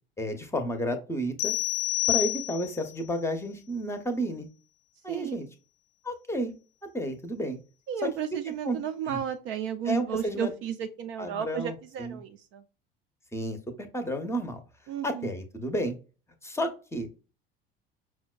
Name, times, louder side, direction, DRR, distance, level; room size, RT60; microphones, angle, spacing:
voice 1, 0.2-1.5 2.1-4.5 5.0-5.5 6.0-6.5 6.9-7.6 8.0-8.1 8.6-8.8 9.1-9.2 9.8-10.5 11.2-12.1 13.3-14.6 15.0-15.9 16.4-17.2, equal, 10° left, 0.7 m, -31 dB
sound 1, 1.4-2.9, left 19 dB, 60° left, 0.7 m, -28 dB
voice 2, 5.1-5.4 7.9-12.6 14.9-15.3, right 8 dB, 45° right, 0.4 m, -33 dB
5.7 x 2.1 x 2.3 m
figure-of-eight pair, 65°, 29 cm